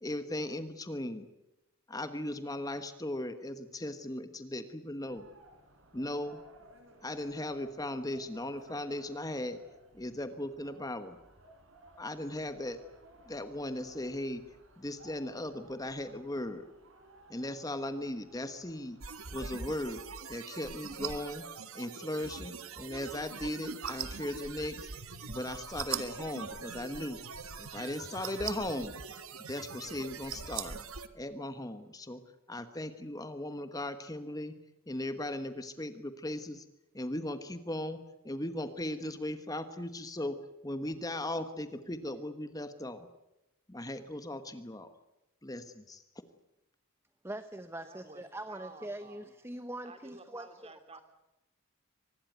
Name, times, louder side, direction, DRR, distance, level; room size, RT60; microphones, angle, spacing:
voice 1, 0.0-1.3 1.9-5.3 5.9-6.4 7.0-9.6 9.9-11.2 12.0-12.8 13.3-14.4 14.8-16.6 17.3-19.0 19.3-20.0 20.3-21.4 21.7-24.9 25.2-27.2 27.6-29.0 29.5-30.8 31.1-32.2 32.5-34.5 34.9-36.6 36.9-38.0 38.2-40.4 40.6-43.1 43.7-44.9 45.4-46.2, left 1 dB, 15° left, 10 dB, 1.2 m, -37 dB
sound 1, 5.0-20.0, right 1 dB, 65° right, 4.9 m, -58 dB
sound 2, 19.0-31.1, right 6 dB, 80° right, 1.8 m, -42 dB
voice 2, 47.2-51.0, right 1 dB, 10° right, 11 dB, 0.9 m, -43 dB
voice 3, 47.8-49.3 49.8-51.0, right 3 dB, 25° right, 10 dB, 2.7 m, -52 dB
24.5 x 20.0 x 9.3 m, 0.92 s
head